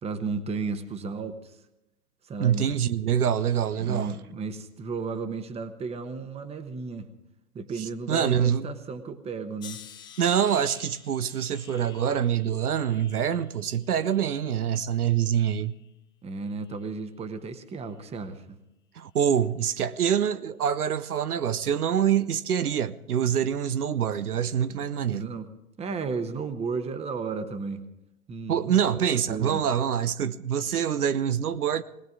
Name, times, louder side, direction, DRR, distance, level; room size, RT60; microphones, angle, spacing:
voice 1, 0.0-1.6 2.2-2.7 3.8-7.1 7.5-9.8 16.2-18.6 24.8-25.5 25.8-27.8 28.3-29.6, right 4 dB, 15° right, 1.1 m, -34 dB
voice 2, 2.4-4.1 7.8-8.7 10.2-15.7 19.0-25.3 28.5-31.8, right 9 dB, 80° right, 0.8 m, -25 dB
sound 1, 9.6-14.8 15.2-15.9 16.6-16.9, left 8 dB, 10° left, 0.5 m, -50 dB
20.0 x 18.5 x 3.7 m
figure-of-eight pair, 110°, 44 cm